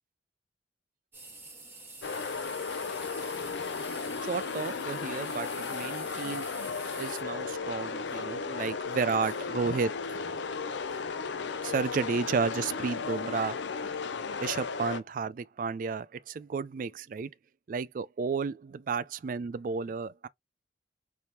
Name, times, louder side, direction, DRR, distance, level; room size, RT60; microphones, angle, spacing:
sound 1, 1.1-7.2, right 3 dB, 10° right, 1.5 m, -47 dB
sound 2, 2.0-15.0, left 5 dB, 80° left, 0.5 m, -35 dB
voice 1, 4.2-6.5 7.0-10.4 11.6-13.7 14.4-17.3 17.7-20.3, right 5 dB, 45° right, 0.3 m, -32 dB
4.2 x 3.4 x 2.9 m
head